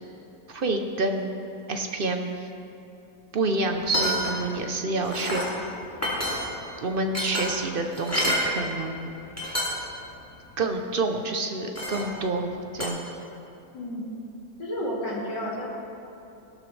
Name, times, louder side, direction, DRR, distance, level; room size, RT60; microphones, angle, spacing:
voice 1, 0.5-1.3 1.7-2.5 3.3-5.7 6.8-9.2 9.5-9.6 10.6-12.5 12.7-13.0, right 2 dB, 55° right, 4 dB, 0.6 m, -28 dB
sound 1, 3.7-4.6 4.9-5.5 6.0-6.7 7.1-8.5 9.1-9.2 9.4-9.9 10.3-10.5 11.7-12.2 12.8-12.9, equal, 10° left, 2.3 m, -28 dB
voice 2, 13.7-14.1 14.6-15.7, equal, 90° left, -5 dB, 3.1 m, -31 dB
17.0 x 12.0 x 3.3 m, 2.7 s
omnidirectional pair, 1.8 m